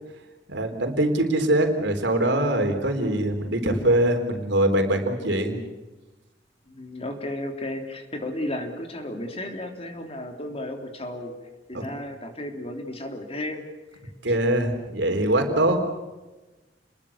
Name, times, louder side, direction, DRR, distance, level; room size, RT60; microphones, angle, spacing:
voice 1, 0.5-5.6 11.7-11.8 14.2-15.8, right 1 dB, 75° right, 5 dB, 3.9 m, -23 dB
voice 2, 6.7-11.3 11.7-13.6, left 1 dB, 35° left, 4 dB, 3.3 m, -34 dB
29.5 x 21.0 x 7.2 m, 1.1 s
head